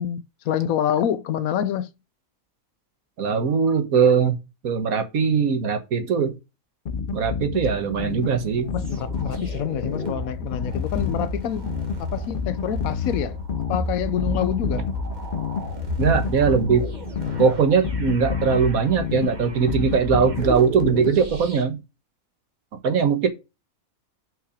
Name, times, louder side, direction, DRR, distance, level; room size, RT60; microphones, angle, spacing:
voice 1, 0.0-1.9 8.7-11.7 12.0-13.4 13.7-14.8, left 9 dB, 80° left, 1.2 m, -26 dB
voice 2, 3.2-4.4 4.6-6.4 7.1-8.7 16.0-16.9 17.4-21.8 22.8-23.3, right 6 dB, 85° right, 1.7 m, -20 dB
sound 1, 6.9-21.5, left 6 dB, 60° left, 0.5 m, -30 dB
sound 2, 7.5-21.6, equal, 35° right, 1.6 m, -33 dB
5.8 x 5.7 x 5.0 m
omnidirectional pair, 1.5 m